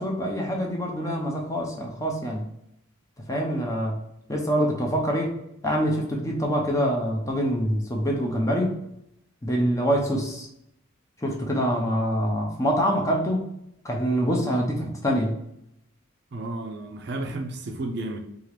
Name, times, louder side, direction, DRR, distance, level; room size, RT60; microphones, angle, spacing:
voice 1, 0.0-2.5 3.3-4.0 4.3-5.4 5.6-8.8 9.4-10.5 11.2-13.5 13.8-15.4, equal, 15° left, 0 dB, 0.5 m, -25 dB
voice 2, 16.3-18.2, right 2 dB, 50° right, 4 dB, 0.4 m, -32 dB
2.9 x 2.4 x 3.2 m, 0.79 s
head